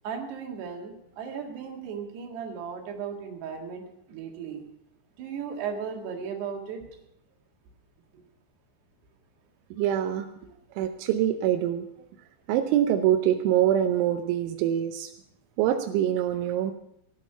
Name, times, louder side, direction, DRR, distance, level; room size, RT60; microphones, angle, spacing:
voice 1, 0.0-4.6 5.2-6.8 10.4-10.5, right 6 dB, 65° right, 2 dB, 3.8 m, -36 dB
voice 2, 9.8-10.3 10.8-11.8 12.5-15.1 15.6-16.7, right 11 dB, 90° right, 7 dB, 3.2 m, -24 dB
17.0 x 10.5 x 5.7 m, 0.77 s
omnidirectional pair, 5.3 m